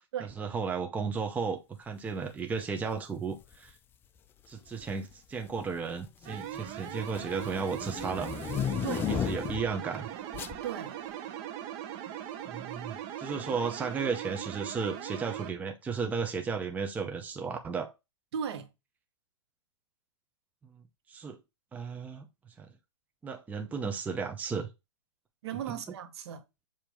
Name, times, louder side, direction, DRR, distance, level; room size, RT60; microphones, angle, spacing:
voice 1, 0.2-3.7 4.5-8.3 8.9-10.1 12.5-17.9 21.1-21.4 21.7-22.3 22.6-22.7 23.2-24.7 25.7-25.8, right 5 dB, 10° right, 0.7 m, -34 dB
sound 1, 3.4-3.7 4.7-5.1 5.5-9.7 10.3-10.6, left 8 dB, 15° left, 0.3 m, -35 dB
sound 2, 6.2-15.5, right 11 dB, 35° right, 1.0 m, -40 dB
voice 2, 10.6-10.9 18.3-18.7 25.4-26.4, right 8 dB, 60° right, 1.4 m, -36 dB
7.1 x 2.9 x 5.2 m
hypercardioid pair, 130°, 16 cm